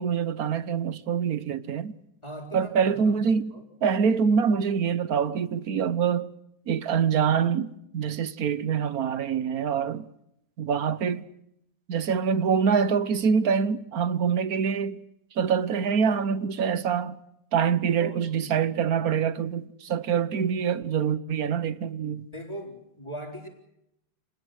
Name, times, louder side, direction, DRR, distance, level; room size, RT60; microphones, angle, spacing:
voice 1, 0.0-2.0 2.5-3.5 3.8-6.3 6.7-10.0 10.6-11.3 11.9-15.0 15.4-17.2 17.5-22.3, right 7 dB, 60° right, 1.4 m, -25 dB
voice 2, 2.2-3.2 3.5-3.6 9.8-9.9 18.0-18.6 22.3-23.5, right 1 dB, 15° left, 4.1 m, -39 dB
28.0 x 20.5 x 6.4 m
omnidirectional pair, 1.9 m